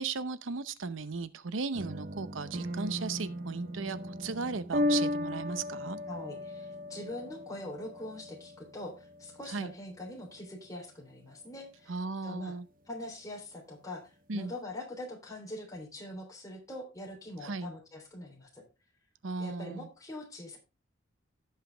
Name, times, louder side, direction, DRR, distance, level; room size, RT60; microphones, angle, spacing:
voice 1, 0.0-6.0 9.5-9.7 11.9-12.7 14.3-14.5 17.4-17.7 19.2-19.9, right 4 dB, 85° right, 0.8 m, -36 dB
sound 1, 1.7-10.8, left 1 dB, 45° right, 0.9 m, -36 dB
voice 2, 6.1-11.9 12.2-12.5 12.9-18.6 19.4-20.6, left 1 dB, 20° left, 3.3 m, -43 dB
16.0 x 5.8 x 3.4 m
head